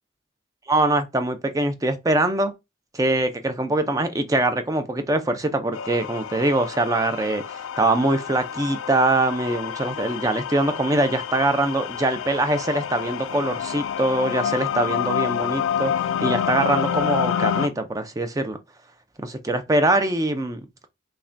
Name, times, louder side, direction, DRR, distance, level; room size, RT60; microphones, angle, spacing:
voice 1, 0.7-2.5 2.9-15.9 16.2-18.6 19.2-20.6, right 2 dB, 15° right, 0.4 m, -23 dB
sound 1, 5.7-17.7, left 8 dB, 90° left, 0.3 m, -28 dB
5.6 x 2.1 x 2.5 m
head